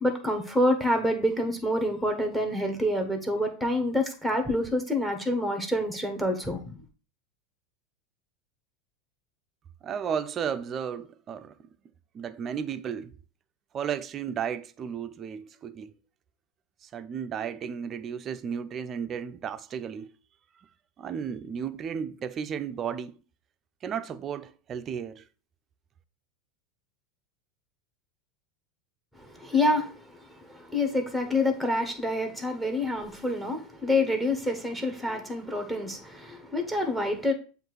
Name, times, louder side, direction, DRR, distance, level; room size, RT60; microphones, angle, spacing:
voice 1, 0.0-6.7 29.2-37.3, left 1 dB, 5° left, 1.3 m, -27 dB
voice 2, 9.8-11.5 12.1-13.1 13.7-15.9 16.8-20.1 21.0-23.2 23.8-25.2, right 7 dB, 35° right, 0.5 m, -34 dB
7.7 x 2.6 x 4.6 m
hypercardioid pair, 100°, 0 cm